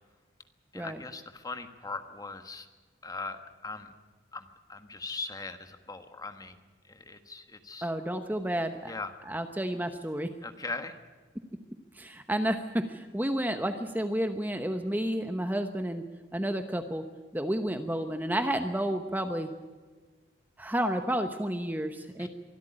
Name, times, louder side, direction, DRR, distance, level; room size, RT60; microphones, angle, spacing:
voice 1, 0.7-2.7 3.0-3.9 4.3-6.6 6.9-7.9 8.8-9.1 10.4-11.0 22.2-22.3, left 3 dB, 20° left, 8 dB, 1.4 m, -40 dB
voice 2, 7.8-8.9 9.3-10.3 11.9-16.0 16.3-17.0 17.3-19.5 20.6-22.3, right 1 dB, 10° right, 7 dB, 0.9 m, -31 dB
23.5 x 13.0 x 9.9 m, 1.4 s
head